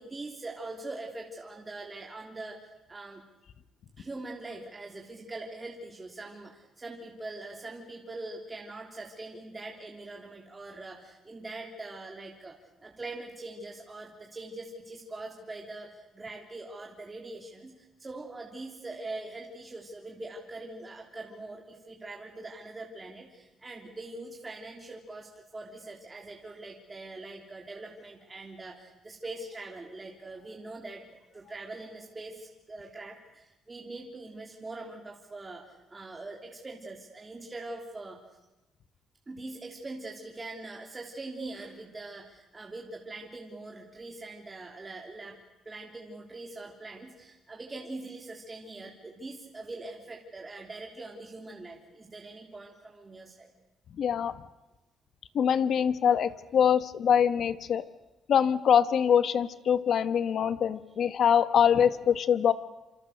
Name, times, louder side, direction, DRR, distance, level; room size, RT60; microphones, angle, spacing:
voice 1, 0.0-2.6 2.9-3.2 4.0-17.7 18.0-35.6 35.9-38.2 39.3-45.4 45.6-53.5, right 2 dB, 20° right, 0 dB, 3.2 m, -42 dB
voice 2, 54.0-54.3 55.3-57.8 58.3-62.5, left 8 dB, 60° left, 12 dB, 1.3 m, -24 dB
27.5 x 27.5 x 6.7 m, 1.0 s
cardioid pair, 110°, 0 cm